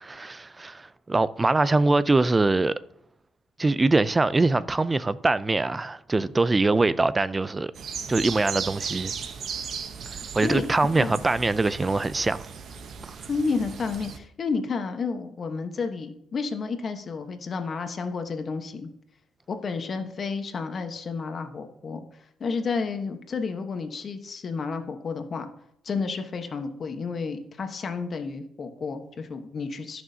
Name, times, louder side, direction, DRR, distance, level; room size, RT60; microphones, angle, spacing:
voice 1, 0.0-2.8 3.6-7.7 8.1-9.1 10.1-12.5 13.0-13.2, right 3 dB, 20° right, 0.4 m, -23 dB
sound 1, 7.7-14.2, right 6 dB, 60° right, 0.8 m, -36 dB
voice 2, 10.4-11.2 13.3-18.9 19.5-25.5 25.8-30.0, left 4 dB, 45° left, 1.1 m, -31 dB
14.0 x 6.2 x 2.8 m
cardioid pair, 90°, 0 cm